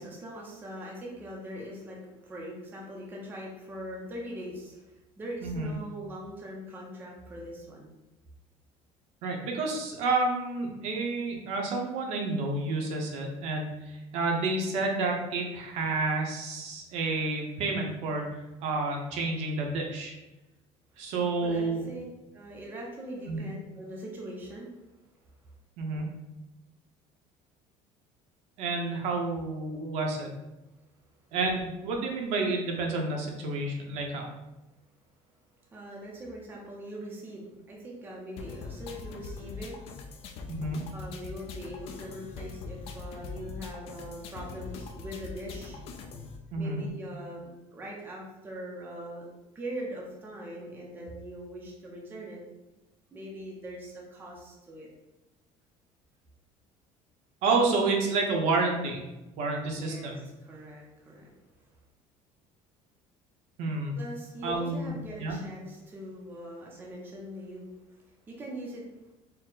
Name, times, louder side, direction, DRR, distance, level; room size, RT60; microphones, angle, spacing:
voice 1, 0.0-7.9 21.0-21.1 21.4-22.0 22.3-24.7 35.7-39.8 40.9-45.8 46.6-49.3 49.5-52.4 53.1-54.9 59.7-61.3 63.9-68.8, equal, 15° right, -2 dB, 0.5 m, -41 dB
voice 2, 5.4-5.8 9.2-18.3 18.6-20.1 21.0-21.8 23.3-23.5 25.8-26.1 28.6-30.3 31.3-34.3 40.5-40.9 46.5-46.8 57.4-59.0 59.4-60.2 63.6-64.0 64.4-64.9 65.2-65.3, right 3 dB, 55° right, 1 dB, 0.7 m, -29 dB
sound 1, 38.4-46.4, left 4 dB, 50° left, 0.4 m, -42 dB
4.3 x 2.0 x 3.8 m, 1.0 s
cardioid pair, 180°, 13 cm